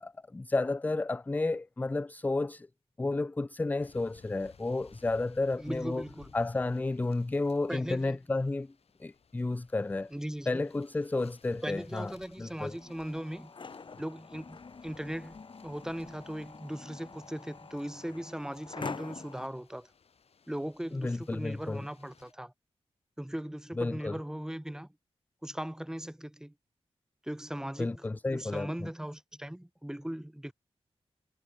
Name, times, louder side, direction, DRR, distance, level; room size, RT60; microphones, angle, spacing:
voice 1, 0.0-2.7 3.0-6.0 6.3-8.7 9.0-10.1 10.5-12.1 12.4-12.7 20.9-21.9 23.8-24.2 27.8-28.9, left 2 dB, 15° left, 0.4 m, -32 dB
sound 1, 3.8-22.3, left 6 dB, 75° left, 4.4 m, -61 dB
voice 2, 5.6-6.3 7.7-8.2 10.1-10.6 11.6-13.5 14.0-19.9 20.5-22.5 23.2-24.9 25.4-26.5 27.2-28.0 28.3-30.5, right 1 dB, 5° right, 2.8 m, -39 dB
sound 2, 12.7-19.5, left 4 dB, 50° left, 3.4 m, -46 dB
wide cardioid pair, 115°, 10 cm